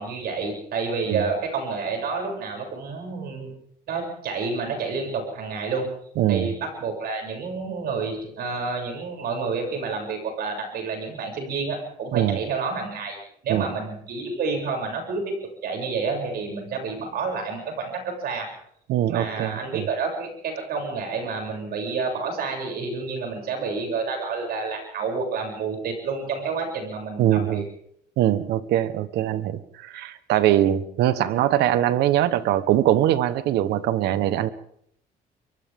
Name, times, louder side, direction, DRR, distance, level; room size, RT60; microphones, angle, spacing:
voice 1, 0.0-3.5 3.9-5.9 6.3-13.2 13.4-15.3 15.6-18.5 19.1-27.6, right 4 dB, 65° right, 2 dB, 7.6 m, -29 dB
voice 2, 6.2-6.5 12.1-12.4 13.5-13.7 18.9-19.8 27.2-27.6 28.2-34.5, right 12 dB, 80° right, 14 dB, 1.3 m, -22 dB
29.5 x 23.5 x 3.8 m, 0.70 s
cardioid pair, 110°, 17 cm